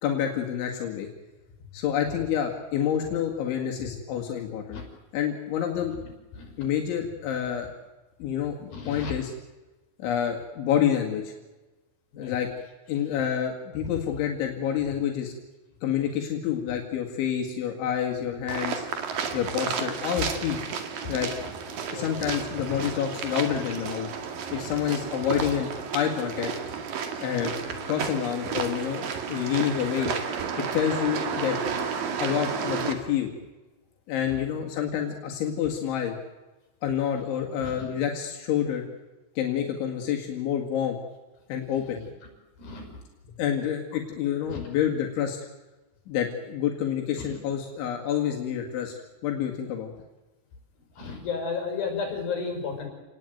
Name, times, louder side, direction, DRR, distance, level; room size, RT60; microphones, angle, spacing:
voice 1, 0.0-1.1 1.7-4.8 5.1-5.9 6.6-7.7 8.2-9.3 10.0-11.3 12.2-12.5 12.9-15.3 15.8-18.8 19.3-20.6 21.1-21.3 21.9-24.1 24.5-26.5 27.2-27.5 27.9-30.1 30.7-31.6 32.2-33.3 34.1-36.2 36.8-38.8 39.4-41.0 41.5-42.1 43.4-45.4 46.1-48.9 49.2-49.9, left 9 dB, 85° left, 1 dB, 4.5 m, -28 dB
voice 2, 5.9-6.5 8.7-9.1 12.1-12.3 21.0-21.2 21.9-22.1 22.7-22.8 24.9-25.0 25.3-25.5 30.7-30.9 37.6-37.9 42.6-43.0 44.5-44.7 47.2-47.3 50.9-52.9, left 5 dB, 50° left, 3 dB, 7.3 m, -34 dB
sound 1, 18.5-32.9, right 6 dB, 55° right, 3.6 m, -32 dB
29.0 x 19.5 x 9.3 m, 1.2 s
omnidirectional pair, 5.3 m